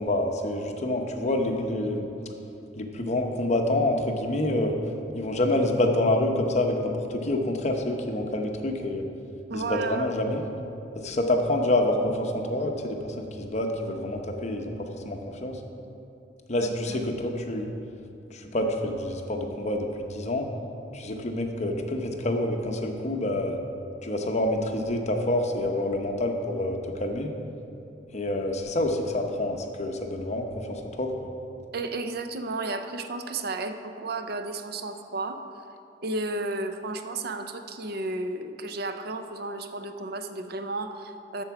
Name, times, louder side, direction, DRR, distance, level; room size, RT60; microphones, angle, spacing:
voice 1, 0.0-2.0 2.8-4.7 5.1-9.0 9.5-10.4 10.9-15.6 16.5-17.7 18.3-20.5 20.9-23.6 24.0-27.3 28.1-31.3, left 1 dB, 40° left, 3 dB, 0.9 m, -27 dB
voice 2, 9.5-10.1 16.6-17.0 31.7-35.4 36.0-41.4, right 2 dB, 60° right, 8 dB, 0.6 m, -33 dB
13.0 x 4.5 x 5.9 m, 2.7 s
head